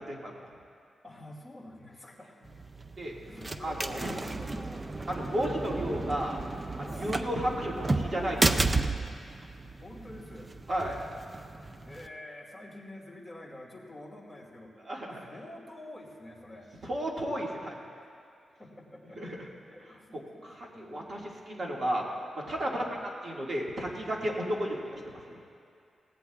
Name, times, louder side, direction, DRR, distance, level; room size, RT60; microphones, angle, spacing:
voice 1, 1.0-2.5 3.2-4.8 6.8-7.1 9.8-10.5 11.8-14.7 15.3-16.7 18.0-18.1 18.6-21.3 22.6-23.0 23.4-23.5, left 1 dB, ahead, -3 dB, 2.4 m, -48 dB
sound 1, 2.4-12.1, right 3 dB, 20° right, 0.4 m, -33 dB
voice 2, 3.6-4.1 5.1-6.4 6.8-8.8 10.7-11.0 14.9-15.3 16.8-17.8 19.2-19.4 20.4-21.2 21.5-22.0 22.3-22.8 23.2-25.0 25.3-25.4, equal, 40° right, -2 dB, 1.9 m, -33 dB
18.0 x 16.5 x 2.4 m, 2.4 s
wide cardioid pair, 150°, 0 cm